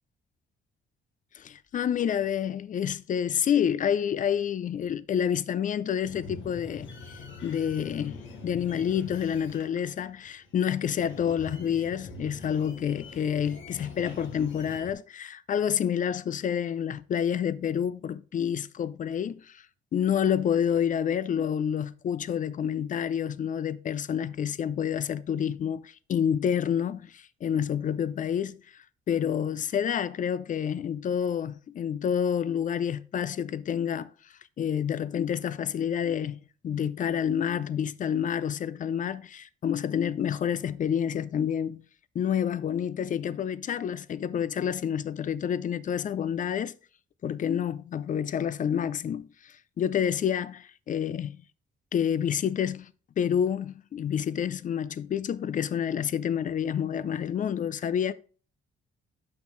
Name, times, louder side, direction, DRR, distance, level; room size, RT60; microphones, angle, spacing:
voice 1, 1.3-19.6 19.9-28.6 29.1-34.1 34.6-41.8 42.1-46.7 47.2-51.4 51.9-52.9 53.2-58.1, left 8 dB, 40° left, 0.4 m, -28 dB
sound 1, 6.0-14.9, left 3 dB, 75° left, 1.4 m, -44 dB
6.3 x 5.6 x 3.1 m
cardioid pair, 90°, 20 cm